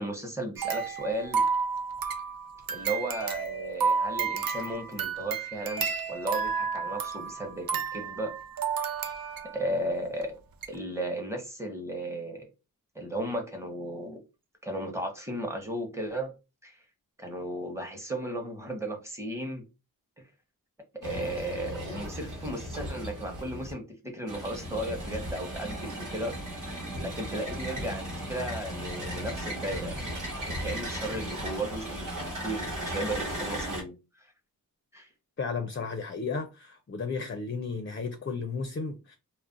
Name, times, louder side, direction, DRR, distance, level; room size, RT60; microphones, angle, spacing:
voice 1, 0.0-1.4 2.7-8.3 9.5-10.4 10.7-12.5 12.9-14.2 14.6-16.3 16.6-16.8 17.2-19.6 20.2-20.3 21.0-26.4 27.0-30.2 30.5-32.1 32.4-34.3 34.9-35.1, right 1 dB, 10° right, 0.8 m, -35 dB
sound 1, 0.6-9.7 10.2-10.3 10.6-10.7, right 5 dB, 80° right, 0.5 m, -31 dB
sound 2, 21.0-23.7 24.3-33.8, equal, 60° right, 1.1 m, -36 dB
voice 2, 35.4-39.2, left 4 dB, 35° left, 0.4 m, -34 dB
2.4 x 2.0 x 3.7 m
wide cardioid pair, 85°, 35 cm